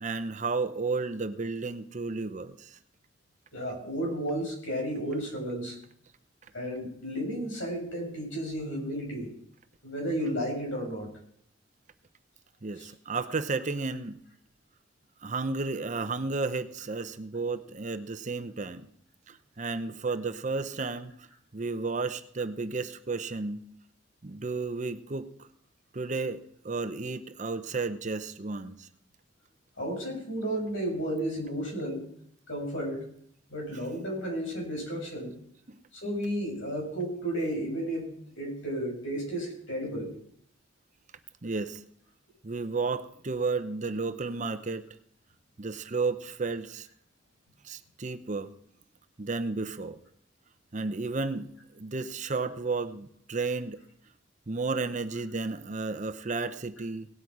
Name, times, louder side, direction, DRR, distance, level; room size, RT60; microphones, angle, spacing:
voice 1, 0.0-2.8 12.6-14.2 15.2-18.9 19.3-21.1 21.5-23.7 24.2-25.5 25.9-28.9 35.7-35.8 41.4-41.8 42.4-44.9 45.6-46.9 47.6-48.5 49.2-50.0 50.7-53.8 54.5-57.1, right 3 dB, 40° right, 11 dB, 0.7 m, -32 dB
voice 2, 3.5-5.8 6.5-9.3 9.8-11.1 12.7-12.9 29.8-32.0 32.5-33.0 33.5-35.3 35.9-38.0 38.4-40.1 52.4-52.5, right 1 dB, 85° left, -1 dB, 6.4 m, -33 dB
18.0 x 8.3 x 4.8 m, 0.65 s
head